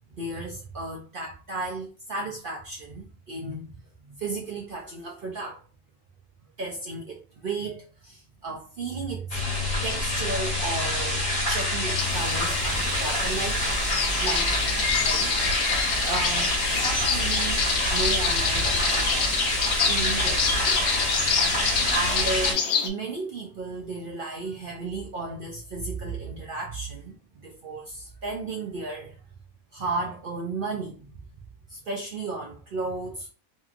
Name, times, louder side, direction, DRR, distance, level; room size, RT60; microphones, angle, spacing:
voice 1, 0.1-3.7 4.1-5.6 6.6-9.4 9.8-13.6 14.2-14.7 15.0-17.6 17.9-19.3 19.8-20.8 21.4-21.6 21.9-27.2 27.4-29.2 29.7-31.1 31.7-33.3, right 3 dB, 65° right, 0.5 m, -34 dB
sound 1, 9.3-22.5, left 1 dB, 35° left, 1.1 m, -26 dB
sound 2, 12.0-22.9, left 6 dB, 65° left, 0.8 m, -27 dB
2.7 x 2.7 x 2.4 m
omnidirectional pair, 1.5 m